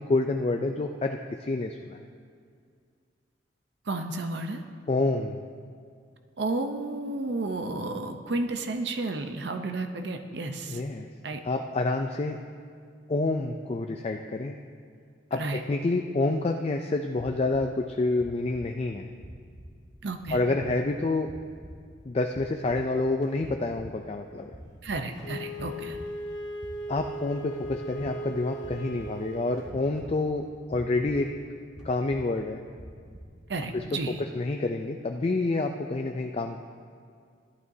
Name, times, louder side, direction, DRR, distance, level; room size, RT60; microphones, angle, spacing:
voice 1, 0.0-2.0 4.9-5.4 10.7-11.1 11.4-12.4 13.1-14.6 15.3-19.1 20.3-21.3 22.1-24.5 26.9-31.3 31.8-32.6 33.7-33.8 34.2-36.6, left 2 dB, 35° left, 4 dB, 0.4 m, -28 dB
voice 2, 3.9-4.6 6.4-10.8 11.2-11.4 15.3-15.6 20.0-20.4 24.8-26.0 33.5-34.2, right 2 dB, 65° right, 6 dB, 0.7 m, -32 dB
sound 1, 17.2-33.8, equal, 30° right, 1.5 m, -48 dB
sound 2, 23.2-23.4 23.7-23.8 25.2-25.4 27.9-28.1 29.6-30.1 31.8-31.9, right 1 dB, 5° right, 2.1 m, -50 dB
Wind instrument woodwind instrument, 25.2-29.7, right 1 dB, 70° left, 0.8 m, -38 dB
15.0 x 11.5 x 2.7 m, 2.2 s
head